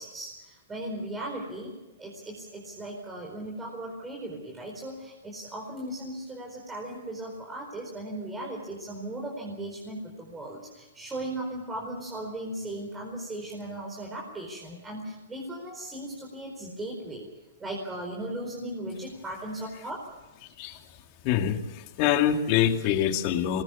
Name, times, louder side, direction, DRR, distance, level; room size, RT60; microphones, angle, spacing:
voice 1, 0.0-17.3 17.6-20.1, right 1 dB, 10° right, -1 dB, 4.6 m, -37 dB
voice 2, 21.2-23.6, left 10 dB, 40° left, 6 dB, 2.4 m, -25 dB
22.5 x 20.0 x 7.1 m, 1.1 s
hypercardioid pair, 145°, 0 cm